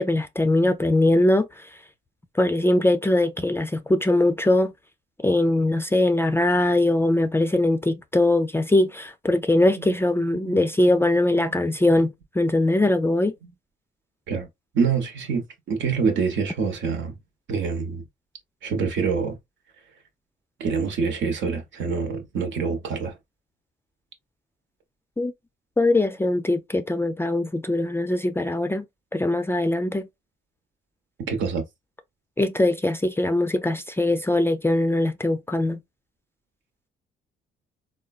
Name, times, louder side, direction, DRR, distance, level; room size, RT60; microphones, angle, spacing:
voice 1, 0.0-1.7 2.4-4.7 5.2-13.3 25.2-25.3 25.8-28.8 29.1-30.1 32.4-35.8, left 1 dB, 10° left, 0.4 m, -21 dB
voice 2, 10.3-10.7 11.4-11.6 13.4-13.5 14.3-14.5 14.7-17.2 17.5-18.0 18.6-19.4 20.6-23.1 31.3-31.6, right 5 dB, 70° right, 1.0 m, -26 dB
3.7 x 2.2 x 2.3 m
cardioid pair, 90°, 20 cm